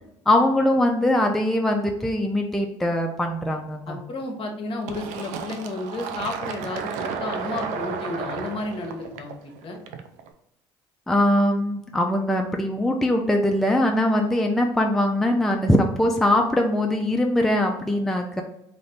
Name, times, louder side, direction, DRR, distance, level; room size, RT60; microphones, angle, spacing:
voice 1, 0.3-4.0 11.1-18.4, left 1 dB, ahead, 2 dB, 0.4 m, -22 dB
voice 2, 3.9-9.8, left 2 dB, 45° left, 3 dB, 0.8 m, -32 dB
Fill (with liquid), 4.9-10.3, right 6 dB, 70° right, 0.4 m, -33 dB
2.5 x 2.5 x 3.4 m, 0.83 s
hypercardioid pair, 65°, 13 cm